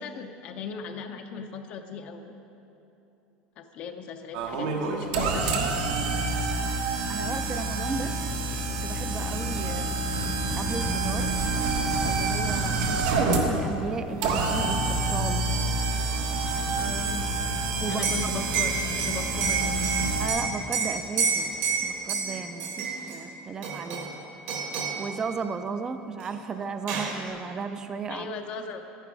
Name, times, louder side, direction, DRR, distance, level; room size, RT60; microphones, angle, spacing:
voice 1, 0.0-2.3 3.6-5.7 16.7-17.3 17.9-19.9 28.1-28.8, left 5 dB, 40° left, 5 dB, 0.6 m, -37 dB
sound 1, 4.3-20.3, right 3 dB, 80° right, 1.3 m, -27 dB
voice 2, 7.1-8.2 8.8-10.0 10.6-11.4 12.0-15.5 17.8-18.1 18.3-18.4 20.2-21.5 21.8-24.1 25.0-28.3, right 5 dB, 20° right, 9 dB, 0.4 m, -35 dB
Mallet percussion, 14.2-16.7, equal, 40° right, 0.9 m, -37 dB
Liquid, 17.9-23.2 23.6-24.2 24.5-25.1 26.2-26.3 26.6-27.2, right 5 dB, 60° right, 1.5 m, -29 dB
11.5 x 9.8 x 4.7 m, 3.0 s
cardioid pair, 165°, 3 cm